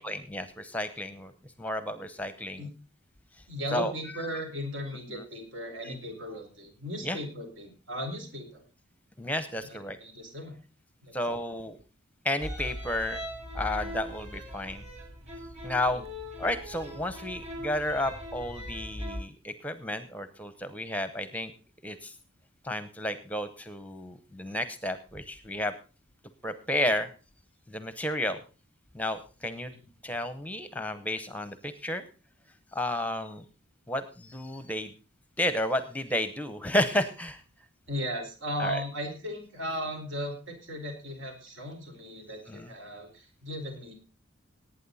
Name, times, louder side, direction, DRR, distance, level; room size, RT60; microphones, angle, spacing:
voice 1, 0.0-1.3 1.6-2.6 3.7-3.9 5.1-5.2 5.8-5.9 7.0-7.2 9.2-10.0 11.1-11.8 12.2-13.2 13.5-14.8 15.6-16.0 16.4-21.5 21.8-22.2 22.6-25.7 26.4-27.1 27.7-28.4 28.9-29.7 30.0-32.0 32.7-33.4 33.9-34.9 35.4-37.4 38.6-38.8 42.5-42.7, left 1 dB, 5° left, 12 dB, 0.8 m, -32 dB
voice 2, 3.5-8.6 9.6-10.5 11.0-11.4 15.9-16.0 29.7-29.8 37.9-43.9, equal, 70° right, 4 dB, 4.8 m, -37 dB
sound 1, 12.4-19.2, equal, 30° right, 4.7 m, -40 dB
18.5 x 9.1 x 4.1 m, 0.34 s
head